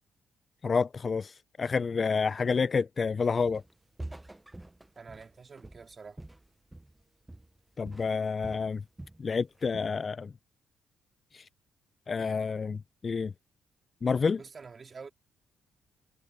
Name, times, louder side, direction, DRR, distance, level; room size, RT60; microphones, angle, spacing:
voice 1, 0.6-3.6 7.8-8.8 9.2-10.3 11.3-11.4 12.1-13.3 14.0-14.4, left 5 dB, 35° left, 0.3 m, -29 dB
Walk footsteps, 3.5-3.7 4.0-7.0 7.3-7.6 7.9-9.2 9.6-10.0, right 1 dB, 10° right, 0.6 m, -46 dB
voice 2, 5.0-6.2 14.4-15.1, right 5 dB, 35° right, 2.3 m, -47 dB
cardioid pair, 90°, 0 cm